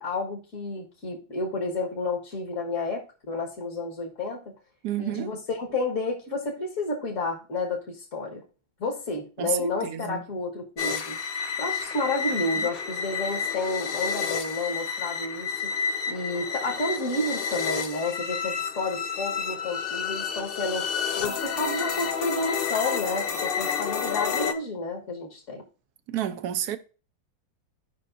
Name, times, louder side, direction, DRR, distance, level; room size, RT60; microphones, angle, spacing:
voice 1, 0.0-4.5 5.0-8.4 8.8-11.2 11.6-15.7 16.1-20.9 21.2-25.7, left 2 dB, 45° left, 1.8 m, -31 dB
voice 2, 4.8-5.4 9.4-9.6 9.8-10.2 26.1-26.8, right 11 dB, 65° right, 1.1 m, -30 dB
sound 1, 10.8-24.5, left 6 dB, 80° left, 0.5 m, -30 dB
16.0 x 5.5 x 2.6 m
omnidirectional pair, 2.0 m